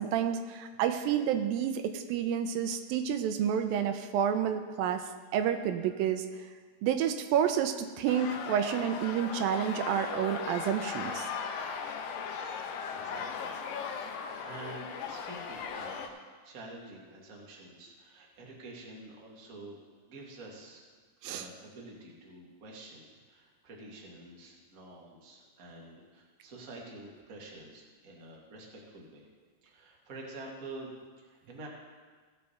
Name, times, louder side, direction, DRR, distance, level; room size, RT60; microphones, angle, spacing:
voice 1, 0.0-5.0 5.3-6.3 6.8-11.3 21.2-21.4, right 9 dB, 85° right, 8 dB, 2.3 m, -29 dB
sound 1, 8.1-16.1, left 6 dB, 85° left, 2.4 m, -38 dB
voice 2, 12.4-13.6 14.0-19.8 20.1-20.8 21.2-29.3 29.6-31.7, right 2 dB, 35° right, -2 dB, 1.4 m, -48 dB
16.0 x 6.7 x 4.2 m, 1.5 s
omnidirectional pair, 4.1 m